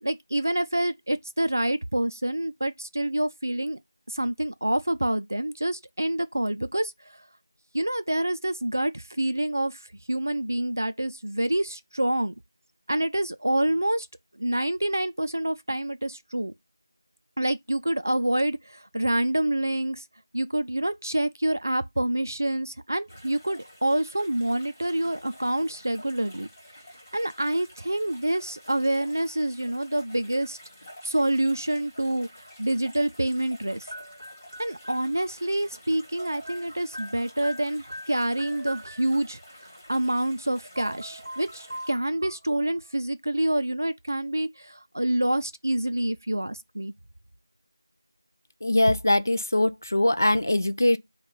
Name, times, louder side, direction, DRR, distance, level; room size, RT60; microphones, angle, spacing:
voice 1, 0.0-3.8 4.1-6.9 7.7-9.8 10.1-12.3 12.9-14.1 14.4-16.5 17.4-20.0 20.3-26.5 27.1-30.6 31.0-33.9 34.6-39.4 39.9-46.9, right 1 dB, 45° right, 0.4 m, -27 dB
sound 1, 23.1-41.9, equal, 20° left, 1.8 m, -50 dB
sound 2, 33.9-35.7 35.9-39.5 40.5-40.6 40.8-42.9, equal, 75° right, 0.7 m, -42 dB
voice 2, 48.6-51.0, left 1 dB, 40° left, 0.4 m, -22 dB
5.3 x 2.3 x 3.8 m
figure-of-eight pair, 175°, 2 cm